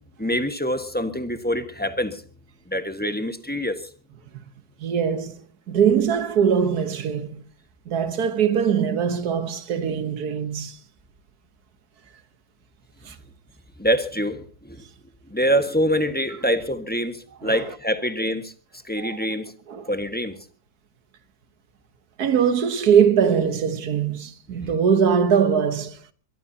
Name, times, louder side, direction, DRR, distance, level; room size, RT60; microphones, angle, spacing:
voice 1, 0.2-2.2 2.7-3.8 13.8-14.8 15.3-18.5 18.8-19.5 19.9-20.3 24.6-24.7, equal, 5° left, 1.3 m, -25 dB
voice 2, 4.8-5.3 5.7-7.4 7.9-10.8 13.0-13.2 17.4-17.6 19.0-19.2 19.7-19.9 22.2-26.0, right 7 dB, 60° right, 1.6 m, -21 dB
22.5 x 22.0 x 2.9 m
omnidirectional pair, 1.9 m